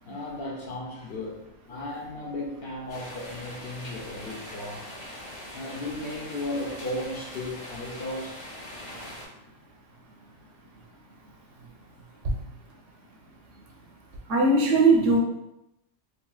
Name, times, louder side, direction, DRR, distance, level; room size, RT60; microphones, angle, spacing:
voice 1, 0.1-1.4 1.7-4.9 5.5-8.4, left 1 dB, 60° left, -2 dB, 0.8 m, -35 dB
sound 1, 2.9-9.3, left 1 dB, 30° left, 0.8 m, -42 dB
voice 2, 14.3-15.2, right 3 dB, 85° right, -1 dB, 1.0 m, -19 dB
3.2 x 2.7 x 2.3 m, 0.88 s
omnidirectional pair, 1.2 m